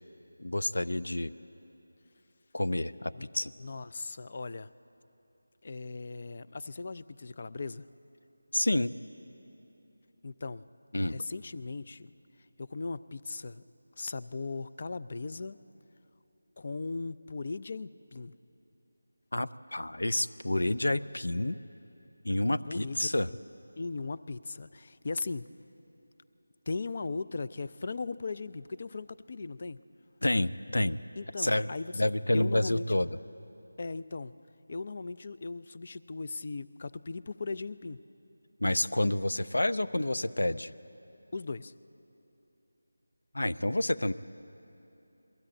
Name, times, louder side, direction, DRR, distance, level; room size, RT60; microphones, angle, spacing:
voice 1, 0.4-1.3 2.5-3.5 8.5-8.9 10.9-11.2 19.3-21.6 22.2-23.3 30.2-31.0 31.4-31.7 31.9-33.1 38.6-40.7 43.3-44.1, left 1 dB, 85° left, 14 dB, 0.6 m, -29 dB
voice 2, 3.6-4.7 5.6-7.9 10.2-10.6 11.1-12.1 12.6-13.6 14.0-15.6 16.6-18.3 22.6-23.4 23.8-25.5 26.7-29.8 31.2-32.1 32.3-33.0 33.8-34.3 34.7-38.0 41.3-41.7, left 3 dB, 40° left, 15 dB, 0.4 m, -38 dB
22.0 x 15.5 x 8.8 m, 3.0 s
figure-of-eight pair, 170°, 0 cm